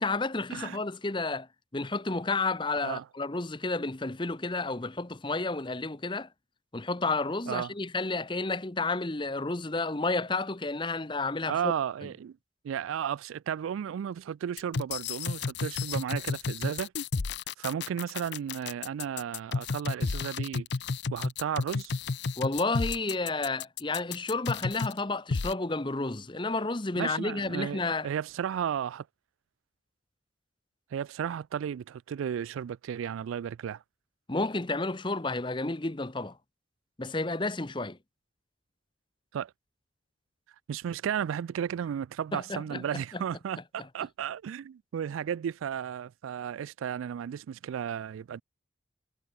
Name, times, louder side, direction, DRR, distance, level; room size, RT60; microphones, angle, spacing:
voice 1, 0.0-1.5 1.7-6.3 6.7-11.7 22.4-28.1 34.3-36.4 37.0-38.0 42.3-43.2, left 3 dB, 25° left, 0.9 m, -31 dB
voice 2, 11.5-12.4 12.6-16.9 17.6-20.7 21.1-22.0 27.0-29.1 30.9-33.8 39.3-39.5 40.7-48.4, right 8 dB, 85° right, 0.3 m, -34 dB
sound 1, 14.6-25.0 25.3-25.5, left 4 dB, 60° left, 0.6 m, -32 dB
head